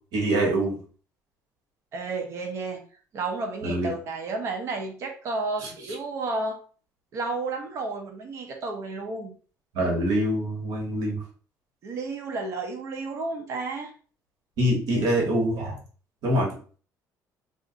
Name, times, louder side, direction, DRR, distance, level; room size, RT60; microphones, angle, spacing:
voice 1, 0.1-0.8 3.6-3.9 9.7-11.2 14.6-15.8 16.2-16.5, right 1 dB, 65° right, 0 dB, 1.2 m, -24 dB
voice 2, 1.9-2.8 3.1-6.6 7.1-9.3 11.8-13.9, right 3 dB, 45° right, 3 dB, 0.6 m, -32 dB
2.5 x 2.5 x 3.8 m, 0.40 s
cardioid pair, 175°, 7 cm